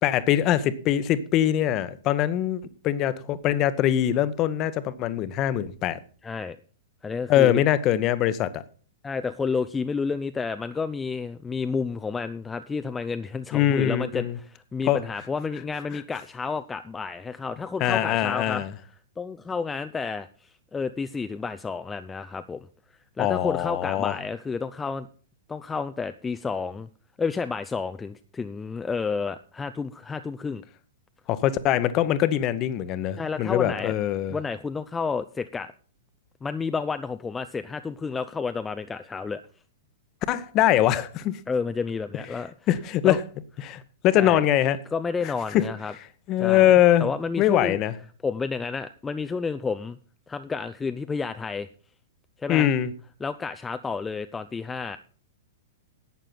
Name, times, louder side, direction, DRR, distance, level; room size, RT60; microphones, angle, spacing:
voice 1, 0.0-6.0 7.3-8.6 13.5-14.4 14.8-15.0 15.9-16.0 17.8-18.7 23.2-24.1 31.3-34.4 40.3-41.4 42.7-43.2 43.6-44.8 45.2-45.7 46.3-47.1 47.4-47.9 52.5-52.9, left 12 dB, 35° left, 1.0 m, -22 dB
voice 2, 6.2-6.6 7.0-7.6 9.0-18.6 19.2-22.7 23.2-25.1 25.5-26.9 27.2-30.6 33.2-33.9 34.3-35.7 36.4-39.4 41.5-42.5 43.0-43.2 44.2-44.4 44.9-45.9 46.4-46.7 47.0-47.8 48.2-50.0 50.3-51.7 52.4-52.7 53.2-55.0, left 5 dB, 15° left, 0.6 m, -30 dB
11.5 x 9.0 x 5.8 m
figure-of-eight pair, 105°, 0 cm